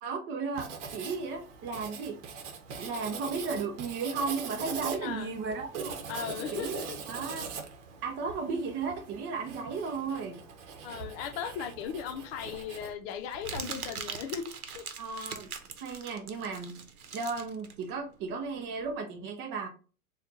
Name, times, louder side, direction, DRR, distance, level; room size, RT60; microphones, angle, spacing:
voice 1, 0.0-2.2 2.8-6.0 6.5-7.5 8.0-10.4 15.0-15.5 15.8-16.8 17.1-19.7, right 4 dB, 30° right, 0.6 m, -35 dB
Writing, 0.5-12.9, right 5 dB, 55° right, 1.1 m, -42 dB
voice 2, 5.0-5.3 6.1-7.0 10.8-14.8, left 8 dB, 45° left, 0.7 m, -37 dB
Crumpling crinkling, 11.8-18.9, right 6 dB, 90° right, 0.9 m, -42 dB
4.3 x 2.4 x 3.8 m
hypercardioid pair, 110°, 43 cm